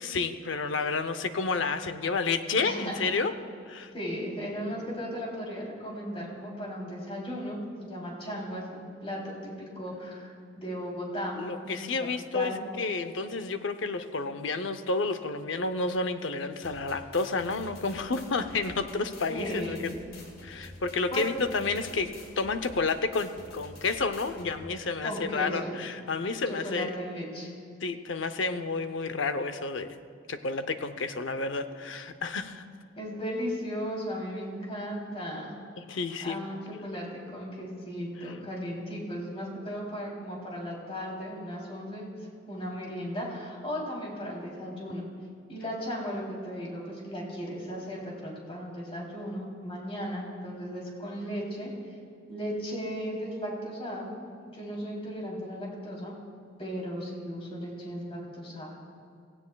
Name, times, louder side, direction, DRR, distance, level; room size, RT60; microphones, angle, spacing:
voice 1, 0.0-3.3 3.7-3.9 11.4-12.5 12.8-19.9 20.4-26.9 27.8-30.0 30.3-32.6 35.8-36.4, left 4 dB, 70° left, 9 dB, 0.7 m, -30 dB
voice 2, 2.6-3.1 3.9-11.4 11.6-11.8 12.3-12.5 19.3-19.8 21.1-21.3 25.0-25.7 26.4-27.5 33.0-35.6 36.2-42.1 42.5-45.0 45.5-51.7 52.3-56.1 56.6-58.8, equal, 30° left, -3 dB, 3.1 m, -36 dB
sound 1, 16.6-24.6, left 2 dB, 50° left, 1.9 m, -48 dB
17.0 x 16.0 x 2.3 m, 2.4 s
head